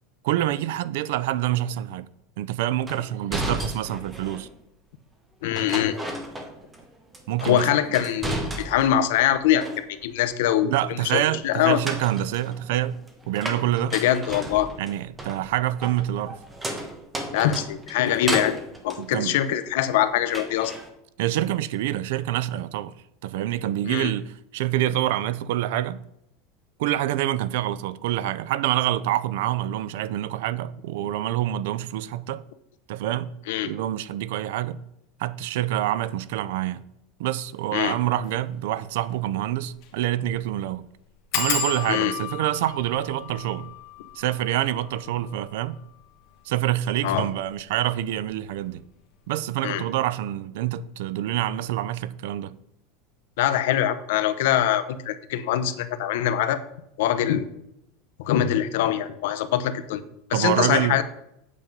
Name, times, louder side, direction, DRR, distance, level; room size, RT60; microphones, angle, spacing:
voice 1, 0.2-2.1 2.4-4.5 7.3-7.6 10.6-14.0 14.8-16.4 19.0-19.4 21.2-22.9 23.2-26.0 26.8-32.4 32.9-33.3 33.6-34.8 35.2-36.8 37.2-40.9 41.3-43.7 44.1-45.8 46.5-48.8 49.3-52.5 60.3-61.0, right 13 dB, 65° right, 0.5 m, -26 dB
sound 1, 2.9-4.5 5.6-6.9 7.1-9.0 9.3-10.2 11.6-19.9 20.3-20.9, right 1 dB, 10° right, 1.1 m, -34 dB
voice 2, 5.4-6.0 7.4-11.8 13.9-14.7 17.3-18.6 18.8-20.8 23.8-24.1 33.5-33.7 37.7-38.0 41.9-42.1 47.0-47.3 49.6-49.8 53.4-56.6 57.0-57.5 58.2-60.0 60.3-61.0, left 11 dB, 70° left, 0.8 m, -23 dB
sound 2, 38.1-38.3 38.8-38.9 39.1-39.2 39.7-40.0 40.2-40.3 41.3-46.6 47.3-47.8 48.1-48.5 48.7-48.8, left 7 dB, 45° left, 1.4 m, -33 dB
8.4 x 5.3 x 7.2 m
supercardioid pair, 175°, 0 cm